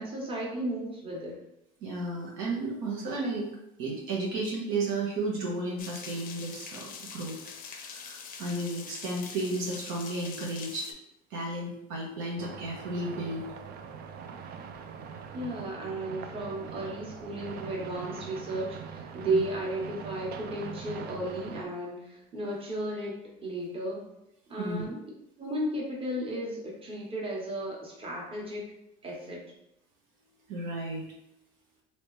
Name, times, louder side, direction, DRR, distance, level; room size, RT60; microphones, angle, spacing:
voice 1, 0.0-1.4 15.3-24.1 24.5-25.0 25.4-28.7 29.0-29.4, right 1 dB, 25° right, -3 dB, 1.2 m, -34 dB
voice 2, 1.8-3.5 3.8-7.4 7.8-10.9 11.3-13.5 19.2-19.4 24.6-24.8 30.5-31.1, right 2 dB, 70° right, -2 dB, 1.0 m, -33 dB
sound 1, 5.8-10.9, left 6 dB, 45° left, 0.5 m, -44 dB
sound 2, 12.4-21.6, right 6 dB, 50° right, 0.4 m, -42 dB
3.2 x 2.8 x 3.1 m, 0.82 s
supercardioid pair, 100°, 21 cm